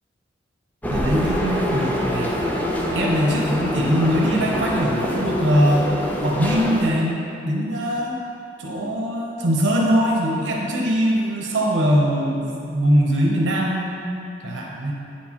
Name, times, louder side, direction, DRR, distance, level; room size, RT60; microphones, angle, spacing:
sound 1, 0.8-6.9, equal, 10° left, 0.5 m, -25 dB
voice 1, 0.9-2.3 2.9-5.9 6.2-8.2 8.6-14.2 14.4-14.9, equal, 90° right, -2 dB, 0.8 m, -21 dB
8.7 x 4.6 x 2.9 m, 2.6 s
head